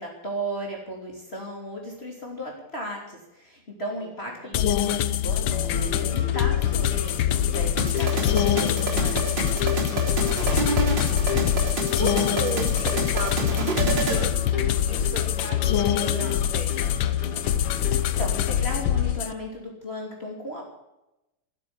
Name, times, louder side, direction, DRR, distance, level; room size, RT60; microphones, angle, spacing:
voice 1, 0.0-9.3 18.2-20.7, equal, 25° left, -1 dB, 3.2 m, -36 dB
voice 2, 4.4-4.8 10.4-17.2, right 4 dB, 75° right, 2 dB, 4.8 m, -38 dB
sound 1, 4.5-19.3, left 11 dB, 70° left, 1.5 m, -24 dB
sound 2, 5.3-19.2, left 6 dB, 85° left, 3.0 m, -34 dB
sound 3, 7.8-14.2, right 2 dB, 55° right, 4.5 m, -28 dB
15.0 x 8.7 x 9.7 m, 0.91 s
omnidirectional pair, 2.4 m